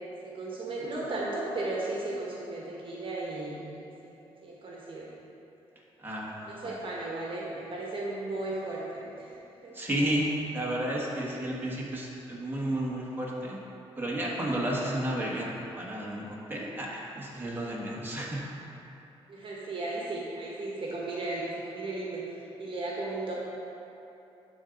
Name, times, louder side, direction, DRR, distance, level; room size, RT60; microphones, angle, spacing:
voice 1, 0.0-4.1 4.4-5.1 6.5-9.7 19.3-23.3, right 2 dB, 55° right, -4 dB, 1.3 m, -35 dB
voice 2, 6.0-6.7 9.7-13.6 14.0-15.5 15.8-16.2 16.5-18.4, right 1 dB, 20° right, -4 dB, 1.5 m, -32 dB
11.5 x 4.0 x 3.9 m, 2.9 s
cardioid pair, 75°, 11 cm